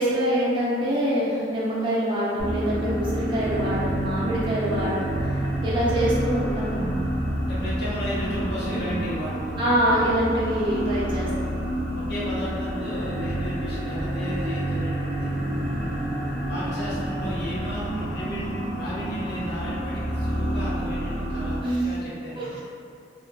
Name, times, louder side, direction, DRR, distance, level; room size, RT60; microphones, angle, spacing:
voice 1, 0.0-5.3 5.6-7.0 9.6-11.3 21.6-21.9 22.4-22.5, equal, 25° right, -9 dB, 0.7 m, -25 dB
sound 1, 2.4-21.6, right 1 dB, 75° right, 0.8 m, -28 dB
voice 2, 7.4-9.6 11.9-15.4 15.7-22.6, left 1 dB, 60° left, -9 dB, 0.9 m, -34 dB
3.0 x 2.1 x 2.5 m, 2.3 s
head